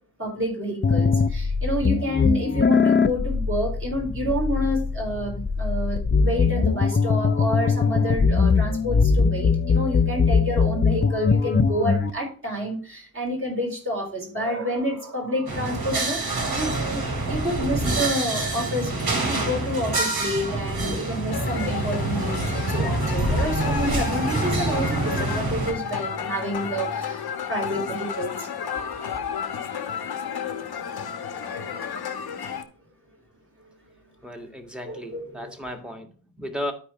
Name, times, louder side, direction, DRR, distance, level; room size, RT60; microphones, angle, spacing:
voice 1, 0.2-17.0 17.3-28.5 30.5-30.7 31.3-31.8 34.8-35.5, equal, 35° right, 3.9 m, -29 dB
sound 1, 0.8-12.1, left 5 dB, 30° left, 0.6 m, -21 dB
sound 2, 15.5-25.7, right 2 dB, 75° right, 2.8 m, -26 dB
sound 3, 21.3-32.6, left 7 dB, 85° left, 1.2 m, -32 dB
voice 2, 34.2-36.7, equal, ahead, 1.7 m, -35 dB
12.5 x 4.9 x 3.0 m
wide cardioid pair, 105°, 37 cm